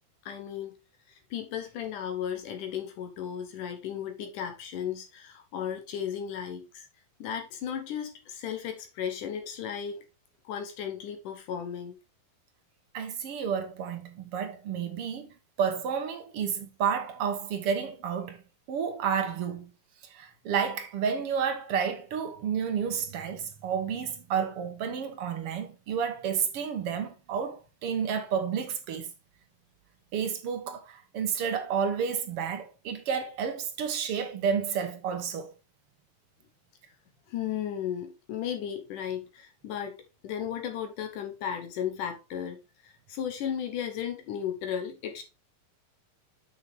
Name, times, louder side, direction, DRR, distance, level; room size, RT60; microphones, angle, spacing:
voice 1, 0.3-0.7 1.1-6.9 7.2-10.0 10.5-12.0 37.3-40.0 40.2-42.6 42.8-45.2, left 9 dB, 70° left, 2.4 m, -35 dB
voice 2, 12.9-15.3 15.6-18.4 18.7-19.7 20.1-29.1 30.1-35.5, right 7 dB, 60° right, 1.6 m, -31 dB
7.9 x 6.4 x 3.5 m
omnidirectional pair, 4.0 m